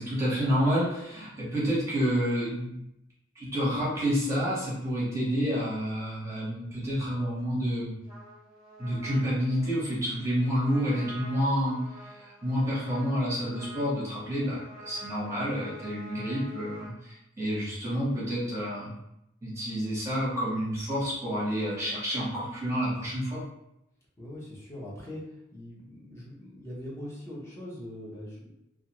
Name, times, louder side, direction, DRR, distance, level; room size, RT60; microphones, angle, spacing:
voice 1, 0.0-2.8 3.3-7.9 8.8-18.9 19.4-23.4, equal, 15° right, -7 dB, 1.0 m, -29 dB
Trumpet, 8.0-16.9, right 1 dB, 45° left, 1.4 m, -48 dB
voice 2, 24.2-25.2 25.5-28.5, left 1 dB, 15° left, -6 dB, 0.7 m, -41 dB
2.4 x 2.3 x 2.9 m, 0.82 s
head